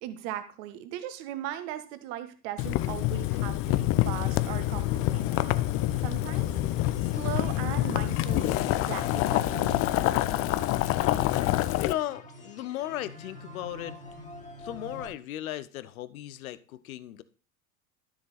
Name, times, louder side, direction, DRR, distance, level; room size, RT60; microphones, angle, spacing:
voice 1, 0.0-5.4 6.0-6.5 7.1-10.0, right 12 dB, 50° right, 1.5 m, -38 dB
Boiling, 2.6-11.9, left 16 dB, 30° left, 0.5 m, -27 dB
sound 1, 4.0-15.1, left 1 dB, 15° left, 2.3 m, -44 dB
voice 2, 11.8-13.9 14.6-17.2, left 14 dB, 65° left, 0.9 m, -36 dB
12.5 x 7.0 x 4.1 m
figure-of-eight pair, 70°, 46 cm